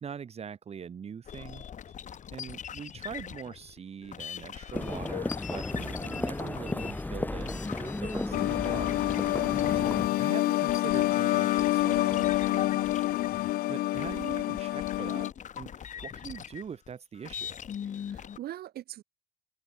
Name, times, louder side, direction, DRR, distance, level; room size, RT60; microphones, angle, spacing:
voice 1, 0.0-1.7 2.3-9.0 9.7-13.1 13.7-15.3 15.6-17.6, right 7 dB, 40° right, 2.1 m, -43 dB
sound 1, 1.2-10.3 10.6-18.4, left 8 dB, 45° left, 4.4 m, -41 dB
sound 2, 4.7-10.1, left 2 dB, 10° left, 1.5 m, -34 dB
sound 3, 8.3-15.3, left 17 dB, 65° left, 0.4 m, -27 dB
voice 2, 9.5-9.9 14.0-14.3 18.0-19.0, right 13 dB, 65° right, 2.7 m, -43 dB
cardioid pair, 110°, 17 cm